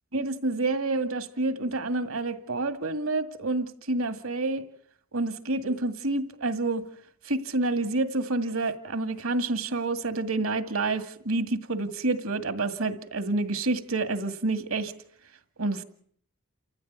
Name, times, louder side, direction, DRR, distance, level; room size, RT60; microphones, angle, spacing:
voice 1, 0.1-4.6 5.1-6.9 7.2-14.9 15.6-15.8, right 2 dB, 70° right, 2.2 m, -28 dB
29.5 x 14.5 x 9.5 m
head